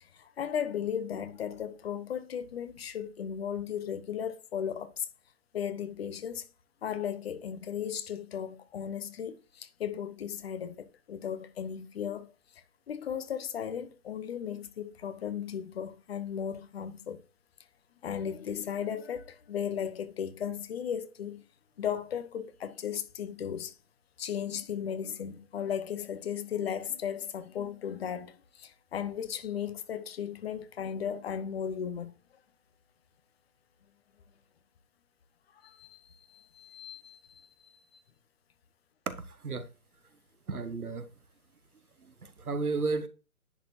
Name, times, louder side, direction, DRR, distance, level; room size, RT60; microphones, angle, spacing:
voice 1, 0.0-5.1 5.5-6.4 6.8-12.3 12.9-17.2 18.0-21.4 21.8-23.7 24.2-32.1 35.6-38.0, left 8 dB, 45° left, 0.8 m, -36 dB
voice 2, 39.1-39.7 40.5-41.1 42.2-43.1, right 4 dB, 85° right, 1.1 m, -33 dB
10.0 x 4.3 x 2.7 m
figure-of-eight pair, 130°, 43 cm